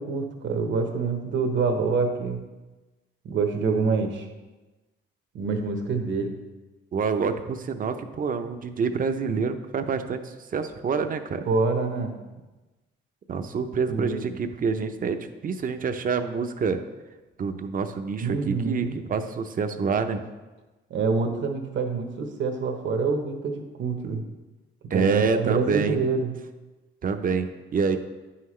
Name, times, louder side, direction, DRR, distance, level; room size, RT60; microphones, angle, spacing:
voice 1, 0.0-2.4 3.2-4.3 5.3-6.4 11.5-12.2 13.9-14.4 18.2-19.0 20.9-24.2 24.9-26.3, right 4 dB, 70° right, 5 dB, 1.1 m, -26 dB
voice 2, 6.9-11.5 13.3-16.8 17.4-20.2 24.9-26.0 27.0-28.0, right 5 dB, 45° right, 8 dB, 0.6 m, -27 dB
9.3 x 5.7 x 3.2 m, 1.2 s
cardioid pair, 90°, 20 cm